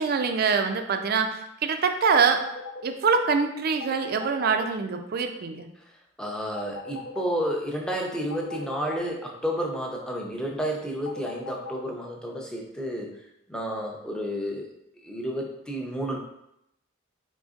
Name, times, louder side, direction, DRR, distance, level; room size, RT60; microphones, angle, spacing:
voice 1, 0.0-2.4 2.8-5.7, right 5 dB, 45° right, 6 dB, 0.4 m, -24 dB
sound 1, 2.0-2.8 3.8-4.6 6.5-7.3 8.3-9.1 11.0-11.8, left 4 dB, 75° left, 0.6 m, -37 dB
voice 2, 6.2-13.1 13.5-14.7 15.0-16.2, equal, 5° left, 0 dB, 0.5 m, -31 dB
4.2 x 3.8 x 2.4 m, 0.80 s
head